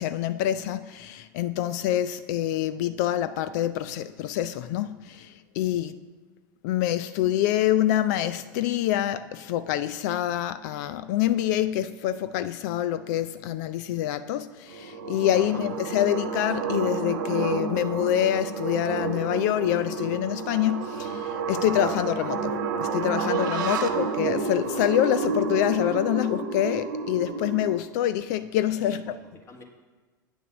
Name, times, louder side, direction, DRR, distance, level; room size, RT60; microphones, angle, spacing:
voice 1, 0.0-6.0 6.6-29.2, left 12 dB, 55° left, 0.4 m, -26 dB
sound 1, 14.7-27.8, right 4 dB, 65° right, 0.8 m, -30 dB
voice 2, 28.9-29.6, left 3 dB, 25° left, 1.7 m, -47 dB
8.8 x 6.9 x 6.0 m
figure-of-eight pair, 80°, 11 cm